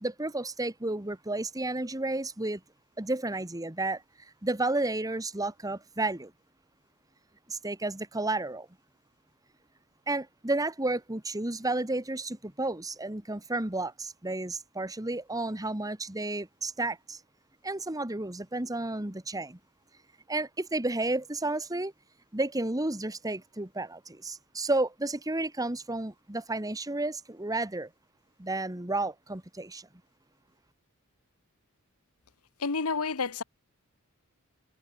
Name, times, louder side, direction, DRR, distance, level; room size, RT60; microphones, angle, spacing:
voice 1, 0.0-2.6 3.0-4.0 4.4-6.3 7.5-8.7 10.1-17.2 17.6-19.6 20.3-21.9 22.3-27.9 28.4-29.9, right 2 dB, 15° right, 1.5 m, -32 dB
voice 2, 32.6-33.4, left 4 dB, 80° left, 1.3 m, -29 dB
head